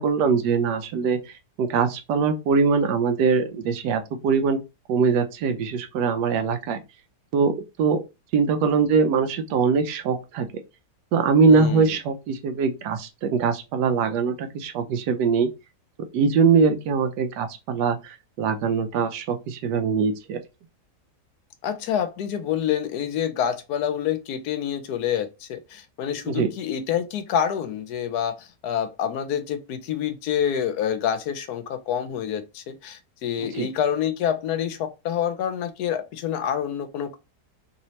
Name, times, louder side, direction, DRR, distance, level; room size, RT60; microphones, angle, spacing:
voice 1, 0.0-1.3 1.6-4.6 4.9-6.8 7.3-8.0 8.3-10.5 11.1-15.5 16.1-20.4 26.3-26.5 33.4-33.7, right 5 dB, 90° right, 1.2 m, -22 dB
voice 2, 11.5-11.9 21.6-37.2, left 9 dB, 75° left, 1.1 m, -27 dB
3.3 x 2.8 x 3.0 m
omnidirectional pair, 1.8 m